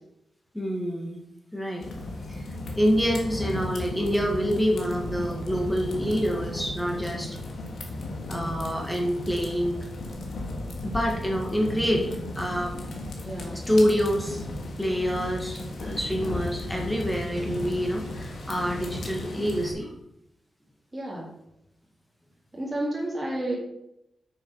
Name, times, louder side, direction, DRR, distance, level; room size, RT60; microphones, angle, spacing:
voice 1, 0.5-1.2 1.5-1.9 2.3-2.4 2.8-7.4 8.3-9.9 10.8-12.8 13.5-14.4 14.8-19.9, equal, 5° left, 0 dB, 1.8 m, -27 dB
sound 1, 1.8-19.7, left 2 dB, 60° left, 1.9 m, -35 dB
voice 2, 13.2-13.6 20.9-21.3 22.5-23.6, right 1 dB, 15° right, -5 dB, 2.1 m, -31 dB
8.8 x 6.8 x 5.6 m, 0.83 s
wide cardioid pair, 175°, 0 cm